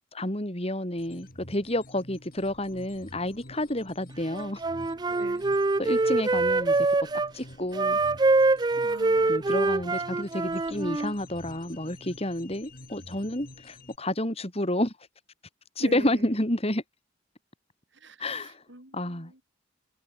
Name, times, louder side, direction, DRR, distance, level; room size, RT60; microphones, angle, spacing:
voice 1, 0.1-4.6 5.8-6.8 7.3-8.0 9.3-14.9 15.8-16.8 18.2-18.6 18.9-19.4, left 1 dB, 30° left, 4.6 m, -30 dB
sound 1, 1.0-14.0, left 1 dB, 50° left, 6.0 m, -49 dB
Wind instrument woodwind instrument, 4.3-7.3 7.7-11.1, right 3 dB, 20° right, 0.4 m, -24 dB
voice 2, 5.1-5.4 8.8-9.4 15.8-16.3 17.9-19.4, right 2 dB, 70° right, 4.5 m, -44 dB
head